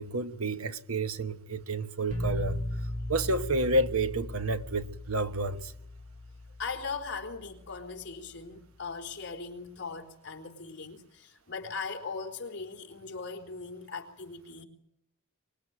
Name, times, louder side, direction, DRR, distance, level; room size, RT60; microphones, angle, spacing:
voice 1, 0.0-2.6 3.1-5.7, right 2 dB, 90° right, 1.3 m, -30 dB
sound 1, 2.1-7.9, left 1 dB, 40° right, 5.4 m, -37 dB
voice 2, 6.6-14.6, left 4 dB, 55° left, 3.9 m, -39 dB
24.5 x 21.5 x 9.5 m
head